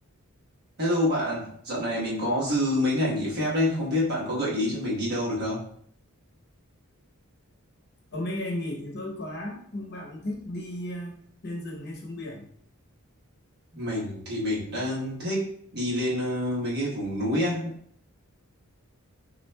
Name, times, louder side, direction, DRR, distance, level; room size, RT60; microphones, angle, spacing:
voice 1, 0.8-5.6 13.7-17.7, left 1 dB, 45° right, -5 dB, 1.3 m, -27 dB
voice 2, 8.1-11.2 11.4-12.4, left 1 dB, 50° left, 0 dB, 0.8 m, -34 dB
5.9 x 2.5 x 2.2 m, 0.64 s
head